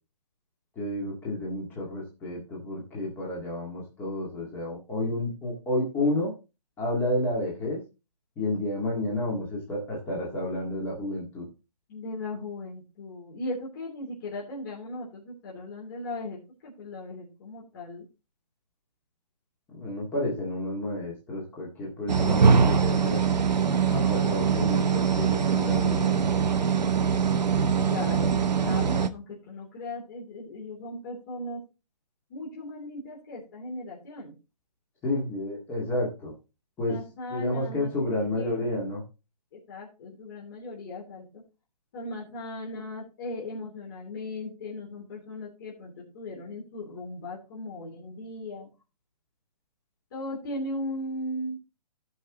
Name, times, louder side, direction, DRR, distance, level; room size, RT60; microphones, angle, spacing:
voice 1, 0.8-6.3 6.8-7.8 8.4-11.4 19.7-23.2 23.9-26.1 35.0-36.3 36.8-37.0 37.3-39.0, left 1 dB, 10° left, -3 dB, 1.9 m, -30 dB
voice 2, 11.9-18.0 27.8-31.6 32.3-34.3 36.8-38.8 39.5-41.4 41.9-48.7 50.1-51.6, left 2 dB, 30° left, -5 dB, 3.2 m, -37 dB
sound 1, 22.1-29.1, right 6 dB, 90° right, 1.0 m, -23 dB
16.5 x 5.6 x 3.0 m, 0.29 s
hypercardioid pair, 165°, 21 cm